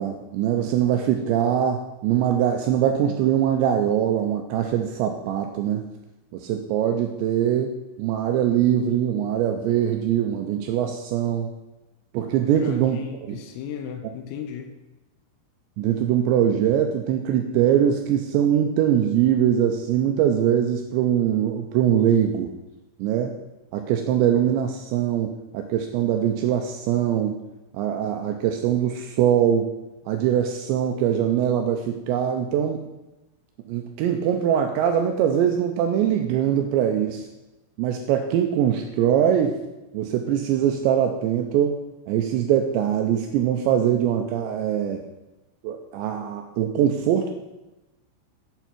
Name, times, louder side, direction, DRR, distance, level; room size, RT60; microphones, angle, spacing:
voice 1, 0.0-5.8 6.3-11.5 12.1-13.0 15.8-22.5 23.0-23.4 23.7-27.4 27.7-29.7 30.1-32.8 33.7-37.3 37.8-39.6 39.9-41.8 42.1-45.0 45.6-47.3, right 9 dB, 90° right, 4 dB, 2.6 m, -22 dB
voice 2, 12.4-14.7, left 8 dB, 90° left, 4 dB, 3.5 m, -35 dB
7.9 x 7.2 x 6.0 m, 1.0 s
omnidirectional pair, 5.8 m